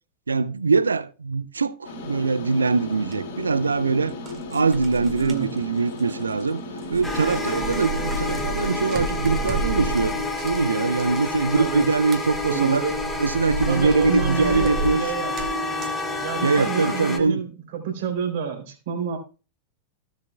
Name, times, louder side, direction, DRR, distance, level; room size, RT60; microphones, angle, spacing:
voice 1, 0.3-4.1 4.5-6.6 6.9-12.8 13.2-15.0 16.4-17.4, right 4 dB, 75° right, 0.5 m, -22 dB
sound 1, 1.8-10.1, left 2 dB, 50° left, 3.6 m, -36 dB
sound 2, 3.1-3.2 4.1-6.5 6.8-16.0, right 2 dB, 30° right, 2.2 m, -33 dB
sound 3, 7.0-17.2, left 2 dB, 10° left, 1.8 m, -29 dB
voice 2, 11.5-11.9 12.5-12.9 13.7-15.3 16.2-19.2, right 7 dB, 55° right, 3.4 m, -29 dB
16.0 x 7.4 x 2.3 m
figure-of-eight pair, 90°, 0 cm